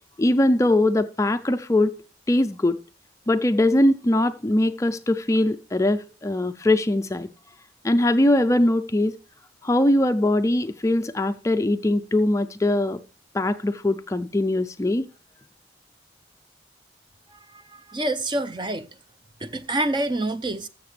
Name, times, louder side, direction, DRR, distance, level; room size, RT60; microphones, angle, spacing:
voice 1, 0.2-1.9 2.3-2.8 3.3-7.3 7.8-9.1 9.6-13.0 13.3-15.1, left 1 dB, 15° left, 0.4 m, -21 dB
voice 2, 17.7-18.9 19.4-20.7, right 1 dB, 25° right, 0.6 m, -27 dB
14.0 x 6.5 x 3.3 m
head